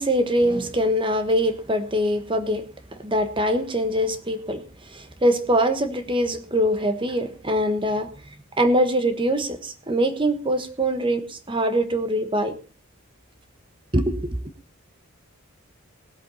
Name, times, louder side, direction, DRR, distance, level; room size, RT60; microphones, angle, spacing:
voice 1, 0.0-2.6 3.0-4.6 4.9-8.1 8.6-12.5 13.9-14.4, equal, 25° right, 1.3 m, -23 dB
19.0 x 8.2 x 4.2 m
head